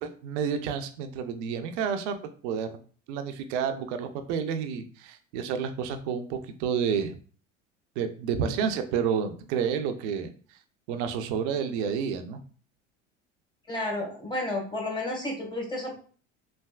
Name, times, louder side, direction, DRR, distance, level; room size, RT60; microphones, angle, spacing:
voice 1, 0.0-2.2 2.4-2.7 3.1-7.2 8.0-10.3 10.9-12.4, right 7 dB, 70° right, 8 dB, 0.6 m, -30 dB
voice 2, 13.7-16.0, left 1 dB, 10° left, 0 dB, 1.3 m, -31 dB
3.3 x 2.6 x 2.3 m, 0.42 s
hypercardioid pair, 80°, 36 cm